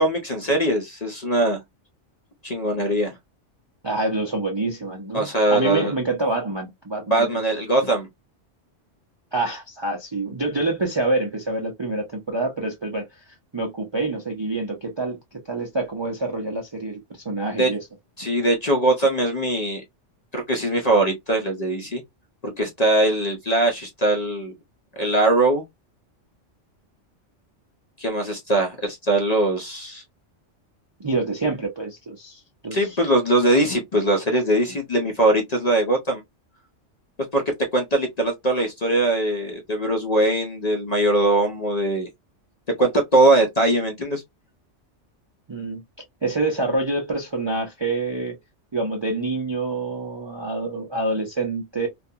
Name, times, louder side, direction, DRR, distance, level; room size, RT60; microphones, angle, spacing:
voice 1, 0.0-1.6 2.4-3.2 5.1-5.9 7.1-8.1 17.6-17.7 18.2-19.8 20.3-22.0 22.4-24.5 25.0-25.6 28.0-30.0 32.7-36.2 37.3-42.1 42.8-44.2, right 1 dB, 45° left, 0.5 m, -21 dB
voice 2, 3.8-7.4 9.3-15.2 15.4-17.8 31.0-33.0 45.5-45.8 46.2-48.4 48.7-51.9, right 2 dB, 40° right, 0.4 m, -27 dB
2.4 x 2.2 x 2.6 m
omnidirectional pair, 1.3 m